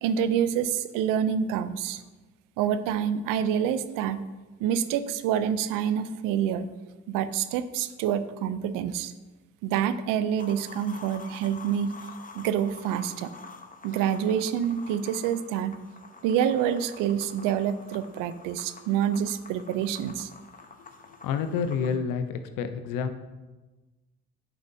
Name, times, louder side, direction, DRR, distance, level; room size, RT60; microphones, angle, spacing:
voice 1, 0.0-2.0 2.6-4.2 4.6-6.7 7.1-9.1 9.6-11.9 12.3-13.3 13.8-15.8 16.2-20.3, right 9 dB, 85° right, 13 dB, 0.5 m, -27 dB
sound 1, 10.4-22.0, left 4 dB, 25° left, 0.9 m, -48 dB
voice 2, 20.8-23.2, left 6 dB, 85° left, 9 dB, 0.6 m, -29 dB
8.4 x 6.9 x 2.7 m, 1.2 s
supercardioid pair, 60°, 31 cm